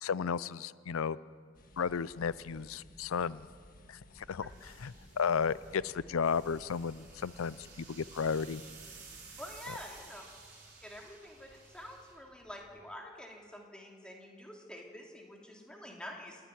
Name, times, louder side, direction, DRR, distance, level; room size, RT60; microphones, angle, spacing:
voice 1, 0.0-1.2 1.8-3.5 3.9-8.6 9.7-9.8, left 6 dB, 85° left, 18 dB, 0.5 m, -34 dB
sound 1, 1.5-10.0, left 1 dB, 40° left, 1.7 m, -58 dB
sound 2, 4.2-12.8, right 4 dB, 45° right, 5.0 m, -54 dB
voice 2, 9.4-10.2 10.8-16.5, left 1 dB, 5° left, 0 dB, 2.8 m, -47 dB
28.0 x 12.0 x 9.9 m, 2.2 s
head